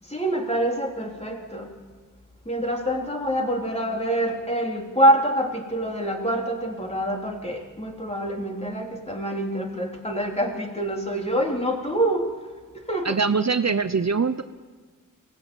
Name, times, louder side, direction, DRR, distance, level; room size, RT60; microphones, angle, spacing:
voice 1, 0.0-1.7 2.5-12.3 12.7-13.2, right 1 dB, 20° left, 1 dB, 3.5 m, -25 dB
voice 2, 13.0-14.4, right 5 dB, 50° right, 11 dB, 0.8 m, -23 dB
23.5 x 16.5 x 9.0 m, 1.4 s
wide cardioid pair, 60°, 33 cm